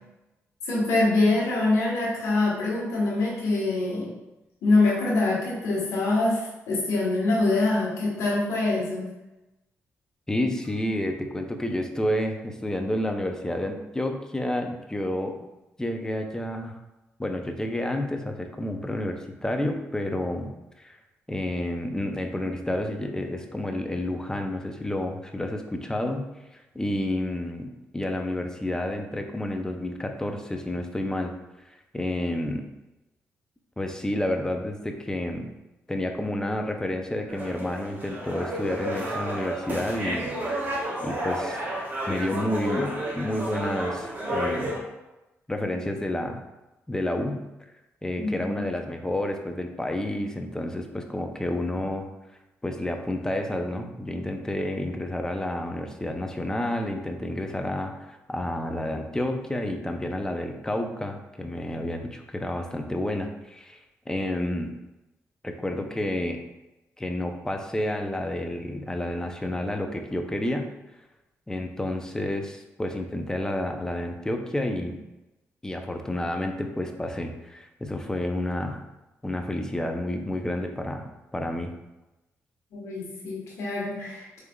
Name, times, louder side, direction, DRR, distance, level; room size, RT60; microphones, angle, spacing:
voice 1, 0.7-4.1 4.6-9.1 48.2-48.6 82.7-84.4, left 2 dB, 85° left, -4 dB, 1.3 m, -24 dB
voice 2, 10.3-15.4 15.8-16.8 17.2-20.5 20.8-21.0 21.3-26.3 26.5-31.3 31.7-32.7 33.8-35.5 35.9-40.3 41.0-41.6 42.1-44.7 45.5-46.4 46.9-47.4 48.0-52.1 52.6-63.8 64.1-64.7 65.4-66.4 67.0-70.7 71.5-75.0 75.6-78.8 79.2-81.1 81.3-81.7, left 1 dB, 10° left, 4 dB, 0.5 m, -30 dB
sound 1, 37.3-44.8, right 1 dB, 35° right, 1.1 m, -31 dB
4.7 x 3.3 x 2.3 m, 1.0 s
cardioid pair, 75°, 5 cm